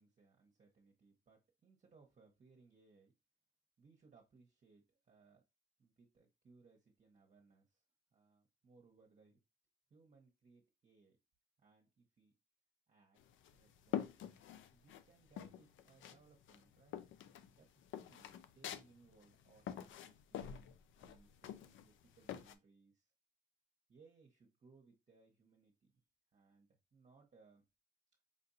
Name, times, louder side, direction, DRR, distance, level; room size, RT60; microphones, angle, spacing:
voice 1, 0.0-3.1 3.8-5.4 5.8-7.8 8.1-9.4 9.9-11.2 11.6-12.3 12.9-13.2 13.5-17.2 17.5-23.1 23.9-25.9 26.3-27.6, right 4 dB, 40° right, 0 dB, 1.0 m, -67 dB
sound 1, 13.2-15.0 15.4-16.2 16.5-22.5, left 10 dB, 75° left, 0.5 m, -46 dB
5.3 x 2.6 x 2.7 m, 0.24 s
cardioid pair, 90°, 20 cm